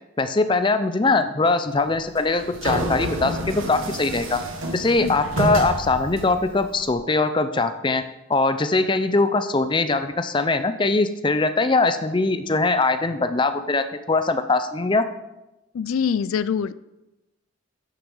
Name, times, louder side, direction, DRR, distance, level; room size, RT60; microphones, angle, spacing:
voice 1, 0.2-4.4 4.7-8.0 8.3-15.0, left 3 dB, 25° left, 10 dB, 0.5 m, -21 dB
sound 1, 1.9-6.9, right 1 dB, 75° right, 1.4 m, -29 dB
voice 2, 15.7-16.7, left 7 dB, 80° left, 16 dB, 0.4 m, -24 dB
9.1 x 6.8 x 5.5 m, 0.96 s
head